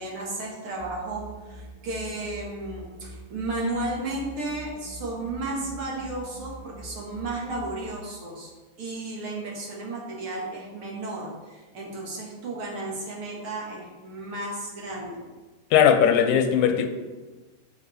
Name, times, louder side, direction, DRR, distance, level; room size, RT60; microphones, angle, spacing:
voice 1, 0.0-8.5 8.8-15.2, right 2 dB, 50° right, -2 dB, 2.0 m, -33 dB
sound 1, 0.8-7.9, right 1 dB, 90° right, 2.4 m, -44 dB
voice 2, 15.7-16.9, left 8 dB, 80° left, 7 dB, 2.2 m, -19 dB
7.1 x 7.1 x 4.2 m, 1.3 s
omnidirectional pair, 3.9 m